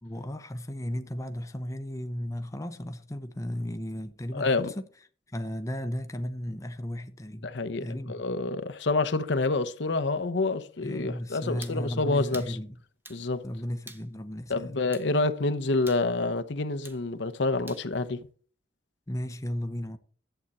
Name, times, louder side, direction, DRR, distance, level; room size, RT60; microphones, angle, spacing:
voice 1, 0.0-4.9 5.3-8.2 10.8-12.7 13.4-14.8 19.1-20.0, equal, 15° left, 0.6 m, -35 dB
voice 2, 4.3-4.7 7.4-12.6 13.1-13.4 14.5-18.2, left 3 dB, 65° left, 0.8 m, -28 dB
sound 1, 11.6-11.8 12.3-12.5 13.1-13.2 13.9-14.1 14.9-15.1 15.9-16.1 16.8-17.0 17.7-17.9, right 2 dB, 10° right, 0.9 m, -45 dB
11.0 x 7.9 x 4.2 m
head